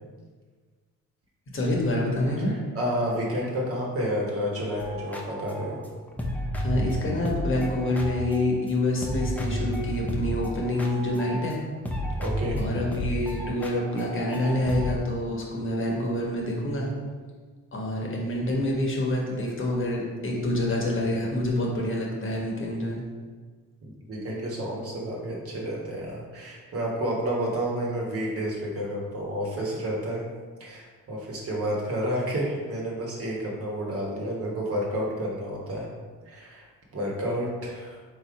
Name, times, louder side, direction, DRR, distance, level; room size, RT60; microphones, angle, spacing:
voice 1, 1.5-2.5 6.6-11.6 12.6-16.9 17.7-23.0, left 1 dB, 40° left, -2 dB, 1.1 m, -27 dB
voice 2, 2.5-5.8 12.2-12.6 13.2-13.3 23.8-30.2 30.6-35.9 36.3-36.7 36.9-38.0, equal, 50° right, -3 dB, 1.3 m, -30 dB
sound 1, 4.8-8.7 9.0-11.6 11.9-14.9, equal, 5° left, 0.6 m, -32 dB
3.7 x 2.8 x 4.6 m, 1.5 s
cardioid pair, 90°, 30 cm